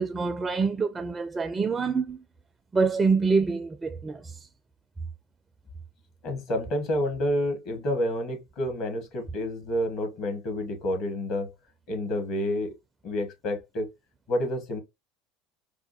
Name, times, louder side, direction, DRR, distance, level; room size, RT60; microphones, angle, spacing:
voice 1, 0.0-2.2 2.7-4.5, right 4 dB, 20° right, 0.4 m, -26 dB
voice 2, 6.2-11.5 11.9-12.7 13.0-13.9 14.3-14.8, left 1 dB, 50° left, 1.4 m, -29 dB
4.7 x 2.1 x 2.8 m
figure-of-eight pair, 70°, 0 cm